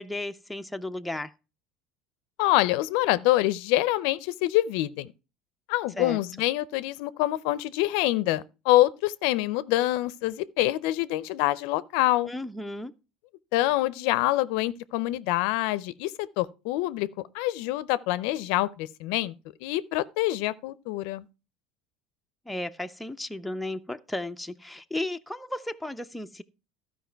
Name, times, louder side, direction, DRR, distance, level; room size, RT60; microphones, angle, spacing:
voice 1, 0.0-1.3 6.0-6.2 12.3-12.9 22.5-26.4, left 1 dB, 5° left, 0.4 m, -34 dB
voice 2, 2.4-5.1 5.7-12.3 13.5-19.3 19.6-21.3, left 16 dB, 75° left, 0.4 m, -26 dB
12.5 x 5.0 x 4.5 m
supercardioid pair, 130°, 0 cm